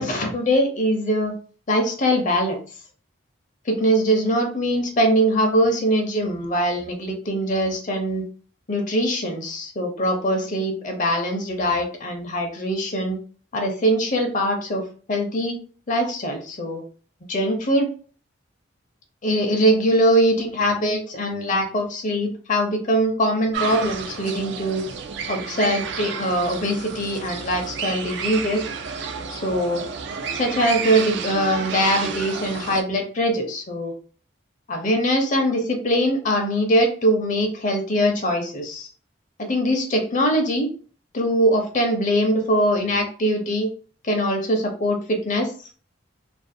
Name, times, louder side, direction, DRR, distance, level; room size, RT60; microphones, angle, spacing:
voice 1, 0.0-1.4 1.7-2.6 3.7-8.2 8.7-13.2 13.5-14.8 15.1-15.6 15.9-16.8 17.3-17.9 19.2-24.8 25.3-28.6 29.3-29.8 30.3-33.9 34.7-38.9 39.4-40.7 41.1-43.7 44.0-45.5, equal, 40° left, 4 dB, 0.5 m, -22 dB
sound 1, 23.5-32.8, right 6 dB, 60° right, 0.3 m, -31 dB
2.4 x 2.2 x 2.6 m, 0.41 s
head